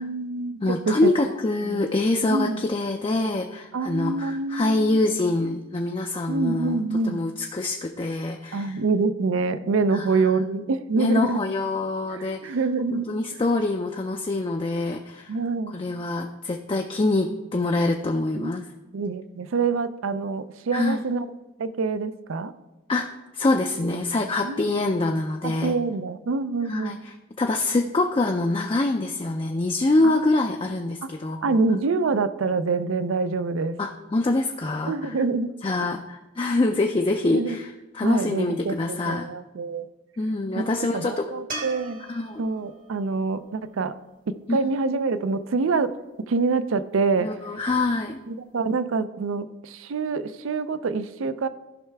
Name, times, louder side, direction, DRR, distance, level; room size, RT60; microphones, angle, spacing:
voice 1, 0.0-1.3 1.6-1.8 2.3-2.6 3.7-5.1 6.3-7.2 8.5-11.4 12.1-13.4 15.3-15.8 18.3-18.5 18.9-21.3 21.6-22.5 24.4-24.6 25.4-27.0 30.0-30.3 31.0-31.1 31.4-33.8 34.9-35.5 35.8-35.9 37.3-37.6 38.0-39.9 40.5-42.0 42.4-43.9 44.3-45.9 46.3-47.3 48.3-51.5, right 4 dB, 75° right, 13 dB, 0.4 m, -26 dB
voice 2, 0.6-6.8 7.1-8.7 9.9-10.1 11.0-12.6 12.9-15.3 15.7-18.6 20.7-21.0 22.9-23.1 23.3-25.7 26.7-26.9 27.4-31.6 33.8-35.1 35.6-39.3 40.2-41.3 42.1-42.4 44.5-44.6 47.2-48.2, left 2 dB, 25° left, 3 dB, 0.4 m, -25 dB
sound 1, 41.5-44.7 48.0-48.1, right 2 dB, 40° right, 1.0 m, -40 dB
14.0 x 5.6 x 3.4 m, 1.1 s
head